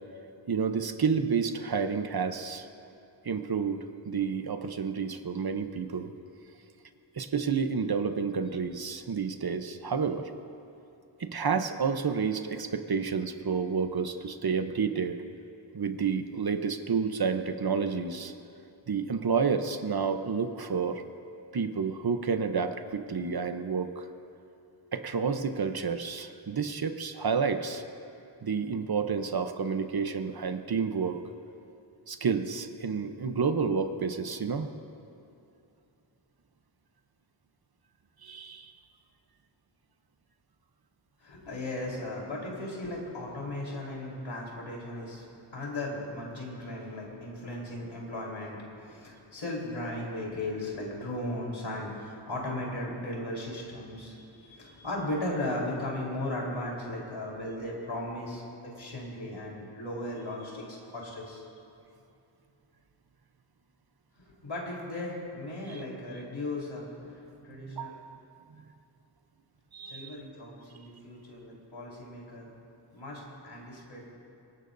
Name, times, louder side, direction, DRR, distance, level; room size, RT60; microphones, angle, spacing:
voice 1, 0.5-2.7 3.2-6.1 7.2-10.3 11.2-15.2 15.7-18.3 18.9-21.0 21.5-24.1 24.9-27.8 28.4-31.2 32.1-34.7 38.2-38.7 65.7-65.8 67.7-68.2 69.7-70.2, right 5 dB, 50° right, 8 dB, 0.8 m, -30 dB
voice 2, 41.2-45.3 45.5-61.4 64.4-68.0 69.9-72.5 72.9-74.1, left 1 dB, 75° left, -3 dB, 3.9 m, -37 dB
24.0 x 19.0 x 2.6 m, 2.7 s
wide cardioid pair, 100°, 47 cm